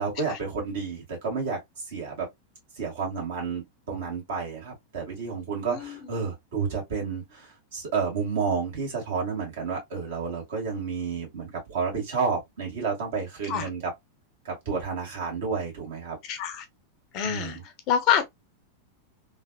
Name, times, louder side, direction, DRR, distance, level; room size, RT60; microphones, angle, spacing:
voice 1, 0.0-1.6 1.9-2.3 2.8-13.9 14.5-16.2 17.2-17.6, right 5 dB, 60° right, 1.6 m, -31 dB
voice 2, 5.7-6.0 13.5-13.7 16.3-16.6 17.1-17.6 17.9-18.2, left 9 dB, 40° left, 0.7 m, -26 dB
3.2 x 2.4 x 2.2 m
figure-of-eight pair, 90°, 0 cm